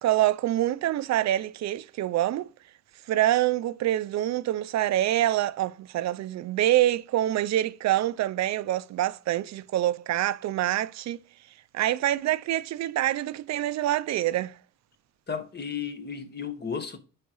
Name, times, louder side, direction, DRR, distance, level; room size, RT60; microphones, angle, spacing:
voice 1, 0.0-2.5 3.1-11.2 11.7-14.5, right 13 dB, 65° right, 0.5 m, -26 dB
voice 2, 15.3-17.0, left 6 dB, 35° left, 1.2 m, -34 dB
9.3 x 4.9 x 3.0 m
cardioid pair, 90°, 30 cm